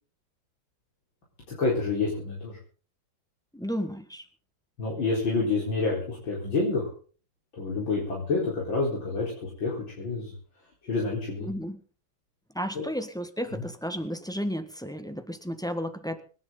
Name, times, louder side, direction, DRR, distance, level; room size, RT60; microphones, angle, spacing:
voice 1, 1.6-2.6 4.8-6.9 7.6-10.3 10.9-11.5 12.7-12.8 13.5-13.6, left 3 dB, 85° left, -4 dB, 5.0 m, -28 dB
voice 2, 3.5-4.2 11.4-11.8 12.5-16.2, equal, ahead, 8 dB, 1.3 m, -33 dB
25.5 x 11.0 x 3.9 m, 0.39 s
omnidirectional pair, 2.1 m